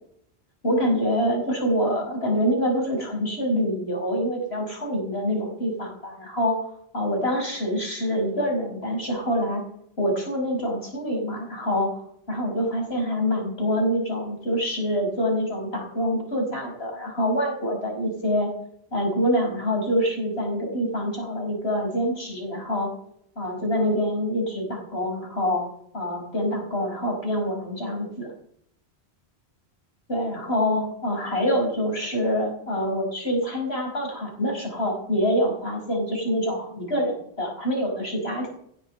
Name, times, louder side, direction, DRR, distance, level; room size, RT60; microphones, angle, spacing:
voice 1, 0.6-6.6 6.9-9.6 10.0-11.9 12.3-18.5 18.9-22.9 23.4-25.6 25.9-28.3 30.1-38.5, equal, 70° left, 1 dB, 5.7 m, -26 dB
16.0 x 8.9 x 7.8 m, 0.69 s
omnidirectional pair, 1.1 m